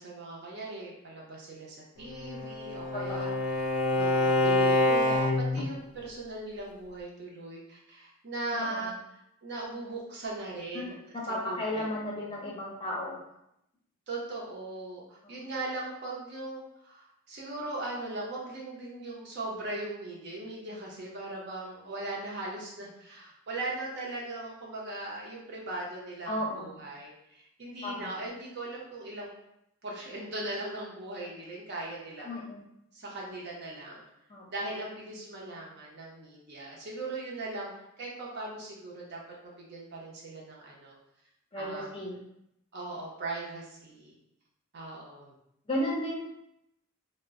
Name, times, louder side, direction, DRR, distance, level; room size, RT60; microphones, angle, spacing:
voice 1, 0.0-9.0 9.4-12.3 14.1-29.3 29.8-32.4 32.9-34.0 34.5-41.0 41.6-41.9 42.7-44.2 44.7-45.3, right 2 dB, 55° right, -3 dB, 0.6 m, -39 dB
Bowed string instrument, 2.1-5.7, left 2 dB, 75° left, 0.3 m, -26 dB
voice 2, 2.9-3.3 8.5-8.9 10.7-10.8 11.1-13.2 15.2-15.3 26.3-26.7 27.8-28.1 32.2-32.6 34.3-34.5 41.5-42.2 45.7-46.3, left 1 dB, 25° left, -4 dB, 0.6 m, -34 dB
2.1 x 2.1 x 3.5 m, 0.79 s
head